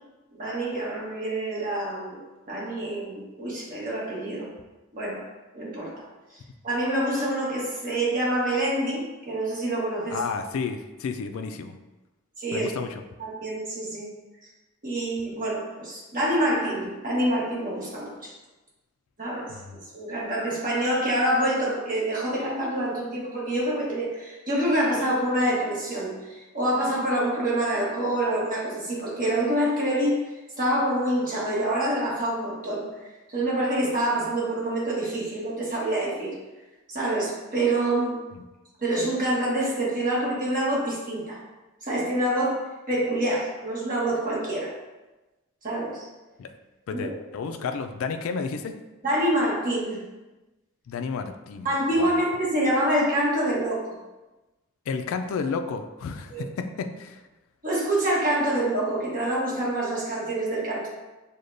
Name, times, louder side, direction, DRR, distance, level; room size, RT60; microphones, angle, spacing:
voice 1, 0.3-2.2 2.5-4.5 4.9-5.2 5.5-5.9 6.6-10.2 12.4-12.7 13.2-14.1 14.8-18.3 19.2-30.2 30.6-32.9 33.3-36.4 36.9-38.2 38.8-41.4 41.8-44.7 45.6-46.0 46.9-47.1 47.5-47.6 49.0-50.0 51.6-53.8 56.3-56.4 57.6-60.9, right 1 dB, 40° right, -5 dB, 1.1 m, -26 dB
voice 2, 10.1-11.7 12.5-13.0 19.5-19.8 38.3-38.4 46.4-46.5 46.9-48.7 50.9-51.7 52.0-52.2 54.9-57.2, left 5 dB, 65° left, 6 dB, 0.3 m, -31 dB
6.4 x 2.2 x 2.5 m, 1.1 s
head